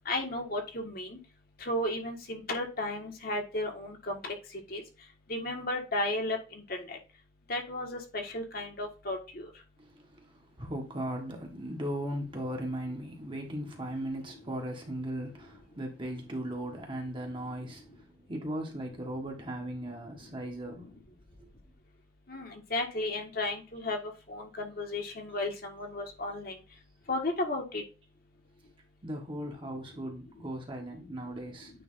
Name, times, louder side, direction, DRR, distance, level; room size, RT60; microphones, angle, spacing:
voice 1, 0.1-1.2 1.6-4.3 4.7-4.8 5.3-6.4 6.7-7.0 7.5-9.4 22.3-24.0 24.3-26.5 27.1-27.8, left 2 dB, 45° left, 1.6 m, -34 dB
voice 2, 9.8-21.0 21.4-21.5 29.0-31.7, right 1 dB, 25° right, 1.5 m, -38 dB
9.2 x 3.4 x 3.7 m
head